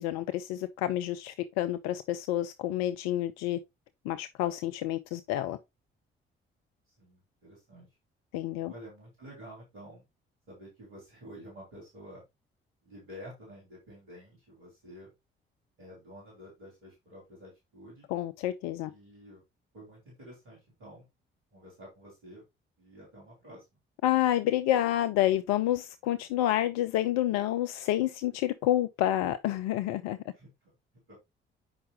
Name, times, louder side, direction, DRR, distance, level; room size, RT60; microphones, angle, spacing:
voice 1, 0.0-3.6 4.1-5.6 8.3-8.7 18.1-18.9 24.0-30.2, left 13 dB, 60° left, 0.5 m, -29 dB
voice 2, 6.9-7.9 8.6-10.0 10.5-12.2 12.9-15.1 15.8-18.1 18.8-19.4 19.7-21.1 21.5-22.4 22.8-23.7 30.3-30.7 31.1-31.2, equal, 70° right, 3.8 m, -50 dB
7.8 x 5.6 x 3.1 m
figure-of-eight pair, 40°, 30 cm